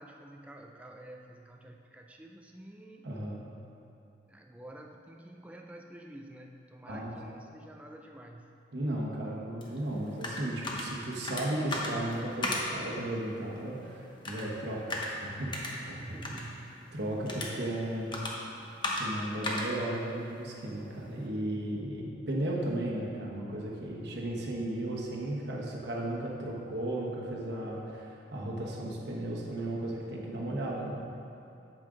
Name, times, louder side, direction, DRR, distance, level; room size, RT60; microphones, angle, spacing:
voice 1, 0.0-3.1 4.3-8.5 16.0-16.7, right 1 dB, 5° right, 2 dB, 0.3 m, -49 dB
voice 2, 3.0-3.4 6.9-7.1 8.7-16.0 16.9-18.2 18.9-31.1, right 1 dB, 60° right, -3 dB, 1.2 m, -35 dB
sound 1, 9.6-21.3, left 1 dB, 25° left, 0.8 m, -38 dB
8.6 x 7.6 x 3.8 m, 2.7 s
head